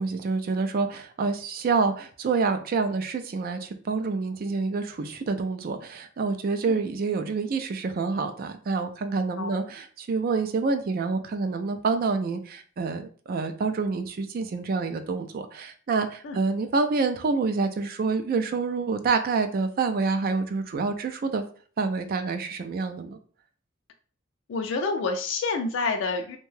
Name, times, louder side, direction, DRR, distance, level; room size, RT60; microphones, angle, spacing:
voice 1, 0.0-21.4 21.8-23.2, right 4 dB, 45° right, 7 dB, 0.3 m, -27 dB
voice 2, 24.5-26.4, left 3 dB, 65° left, 5 dB, 0.3 m, -28 dB
2.6 x 2.2 x 3.1 m, 0.44 s
head